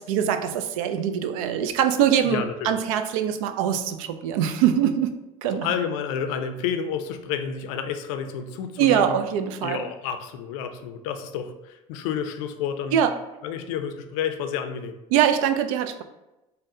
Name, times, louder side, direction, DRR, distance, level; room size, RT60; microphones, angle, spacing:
voice 1, 0.0-5.2 5.4-5.7 8.8-9.9 12.9-13.1 15.1-16.0, right 9 dB, 75° right, 9 dB, 0.4 m, -23 dB
voice 2, 2.2-2.7 5.6-9.2 9.6-13.0 13.4-15.0, left 7 dB, 75° left, 8 dB, 0.4 m, -30 dB
4.0 x 2.1 x 3.7 m, 0.96 s
hypercardioid pair, 75°, 17 cm